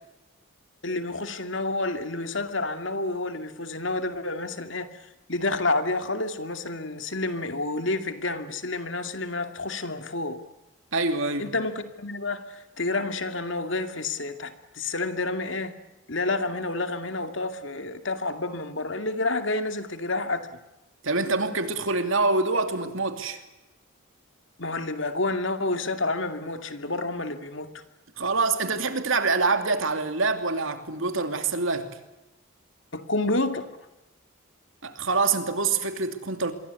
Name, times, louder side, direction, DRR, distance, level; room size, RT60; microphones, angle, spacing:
voice 1, 0.8-4.9 5.3-10.4 11.4-15.7 16.1-20.5 24.6-27.7 32.9-33.7, left 2 dB, 60° left, 2.4 m, -29 dB
voice 2, 10.9-11.5 21.0-23.4 28.2-31.9 34.8-36.5, right 3 dB, 70° right, 2.9 m, -25 dB
26.5 x 23.0 x 8.3 m
head